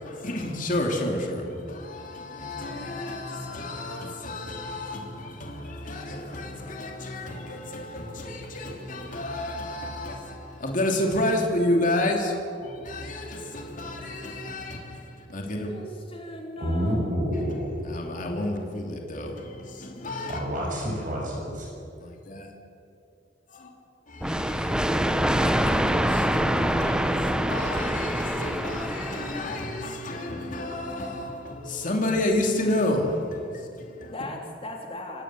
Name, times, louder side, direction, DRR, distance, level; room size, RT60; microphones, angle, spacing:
voice 1, 0.0-15.7 17.3-17.4 17.8-20.4 22.0-22.5 23.5-23.7 24.1-34.2, left 1 dB, 45° left, 2.9 m, -30 dB
voice 2, 15.6-17.2 34.1-35.2, left 1 dB, 30° left, 3.5 m, -38 dB
voice 3, 16.6-17.8 20.3-21.7, equal, 50° right, 6.8 m, -28 dB
sound 1, 24.2-29.8, equal, 5° right, 0.9 m, -25 dB
26.0 x 16.5 x 7.7 m
head